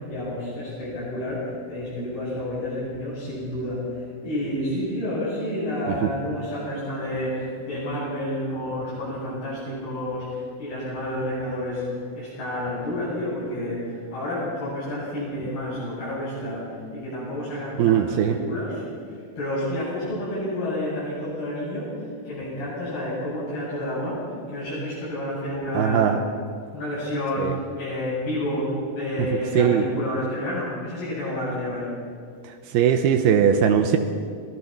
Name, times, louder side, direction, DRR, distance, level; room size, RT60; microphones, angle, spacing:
voice 1, 0.0-11.8 12.1-18.8 19.4-21.9 22.2-24.2 24.5-26.2 26.7-31.9, left 1 dB, 85° left, -11 dB, 9.8 m, -29 dB
voice 2, 17.8-18.4 25.7-26.2 27.4-27.5 29.5-29.8 32.7-34.0, right 9 dB, 85° right, 6 dB, 2.9 m, -19 dB
26.5 x 18.0 x 6.0 m, 2.3 s
omnidirectional pair, 4.4 m